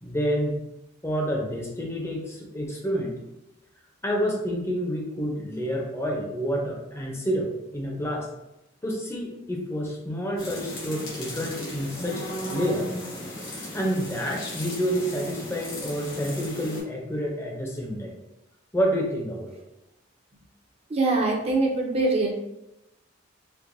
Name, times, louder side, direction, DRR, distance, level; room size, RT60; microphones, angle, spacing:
voice 1, 0.0-0.6 1.0-3.2 4.0-8.3 8.8-12.2 12.5-12.9 13.5-18.1 18.7-19.5, equal, 15° left, -1 dB, 0.6 m, -28 dB
sound 1, 10.4-16.8, left 1 dB, 75° left, 1.4 m, -36 dB
voice 2, 20.9-22.3, right 2 dB, 30° right, 0 dB, 0.6 m, -23 dB
4.5 x 2.2 x 2.6 m, 0.91 s
head